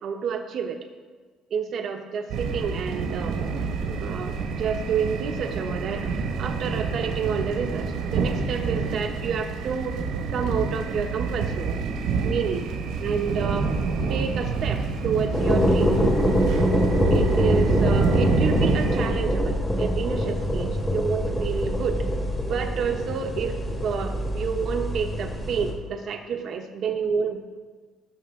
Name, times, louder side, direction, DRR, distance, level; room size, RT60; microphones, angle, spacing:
voice 1, 0.0-0.8 1.5-3.4 4.0-6.1 6.4-9.9 10.3-11.8 12.2-12.6 13.0-13.7 14.1-15.9 17.1-22.0 22.4-23.6 23.8-27.4, right 6 dB, 40° right, 5 dB, 1.0 m, -29 dB
sound 1, 2.3-19.1, right 5 dB, 75° right, 1.5 m, -27 dB
sound 2, 15.3-25.7, equal, 15° left, 1.5 m, -24 dB
18.0 x 7.1 x 3.7 m, 1.4 s
cardioid pair, 175°, 0 cm